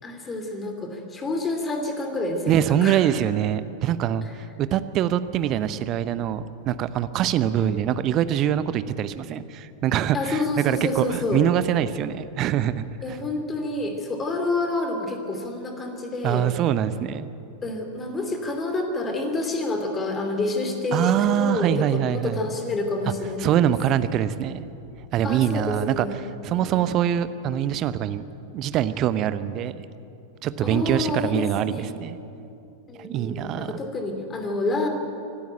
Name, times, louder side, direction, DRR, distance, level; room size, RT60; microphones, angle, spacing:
voice 1, 0.0-3.0 4.2-4.3 7.6-7.8 10.1-11.5 13.0-16.5 17.6-23.7 25.2-26.2 26.5-26.9 30.6-31.9 32.9-34.9, left 2 dB, 20° left, 5 dB, 3.0 m, -28 dB
voice 2, 2.5-4.2 4.6-10.4 10.6-12.9 16.2-17.3 20.9-22.4 23.4-24.6 25.1-26.1 26.4-28.2 28.5-29.8 30.4-32.2 33.0-33.8, right 10 dB, 35° right, 14 dB, 0.8 m, -24 dB
25.0 x 12.5 x 9.2 m, 2.7 s
figure-of-eight pair, 90°, 0 cm